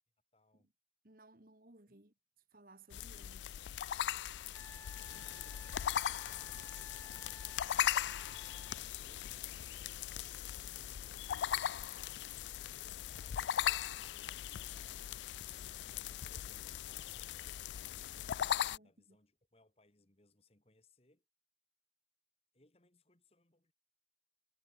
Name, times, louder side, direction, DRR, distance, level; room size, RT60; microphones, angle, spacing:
voice 1, 0.3-0.7 1.9-2.0 4.6-7.7 8.5-15.0 16.0-18.0 18.8-21.2 22.5-23.7, left 2 dB, 35° left, 2.2 m, -70 dB
voice 2, 1.0-2.1 2.5-3.5 18.7-19.2, right 2 dB, 55° right, 1.9 m, -61 dB
sound 1, 2.9-18.8, left 10 dB, 90° left, 0.3 m, -39 dB
Wind instrument woodwind instrument, 4.5-8.8 11.5-11.6, left 3 dB, 15° left, 0.6 m, -56 dB
sound 2, 8.3-13.6, equal, 5° right, 3.7 m, -75 dB
head